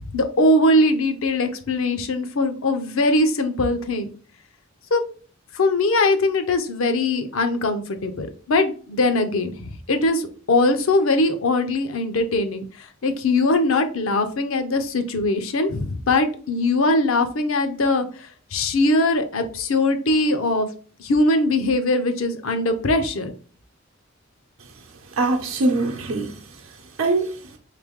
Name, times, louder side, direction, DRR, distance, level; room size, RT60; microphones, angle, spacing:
voice 1, 0.1-4.1 4.9-5.0 5.5-12.6 13.0-20.7 21.0-23.3, left 2 dB, 75° left, 0.6 m, -21 dB
voice 2, 25.1-27.6, right 2 dB, 80° right, 0.7 m, -24 dB
3.3 x 3.1 x 3.5 m
head